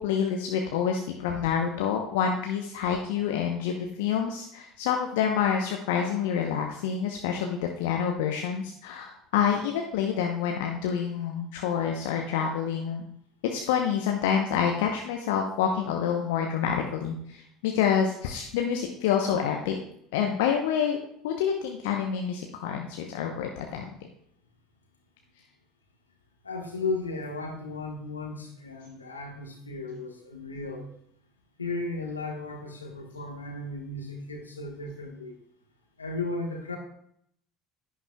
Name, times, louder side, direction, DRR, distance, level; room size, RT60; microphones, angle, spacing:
voice 1, 0.0-13.0 13.4-19.8 20.1-21.0 21.2-23.9, left 7 dB, 70° left, 2 dB, 0.8 m, -27 dB
voice 2, 26.4-30.9 31.6-35.4 36.0-36.8, left 3 dB, 90° left, 3 dB, 1.3 m, -35 dB
10.5 x 9.9 x 2.3 m, 0.69 s
figure-of-eight pair, 65°, 0 cm